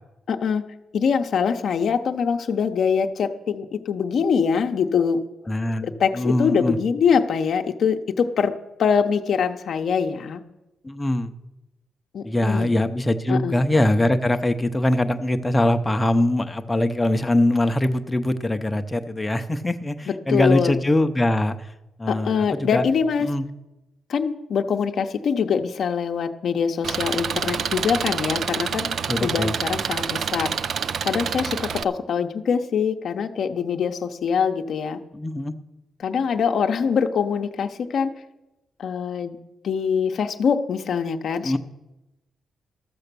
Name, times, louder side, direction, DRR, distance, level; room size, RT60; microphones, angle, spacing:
voice 1, 0.3-0.6 0.9-5.2 5.8-8.5 8.8-10.4 12.1-12.7 13.3-13.6 20.1-20.7 22.1-23.3 24.1-30.5 31.0-35.0 36.0-38.1 38.8-39.4 39.6-41.6, left 6 dB, 55° left, 6 dB, 0.7 m, -23 dB
voice 2, 5.5-6.8 10.8-11.3 12.2-21.7 22.0-22.8 23.2-23.4 29.1-29.6 35.1-35.5 41.4-41.6, left 1 dB, 10° left, 8 dB, 0.6 m, -22 dB
Engine, 26.8-31.8, right 7 dB, 55° right, 0.4 m, -27 dB
13.5 x 6.9 x 6.8 m, 0.98 s
cardioid pair, 140°, 0 cm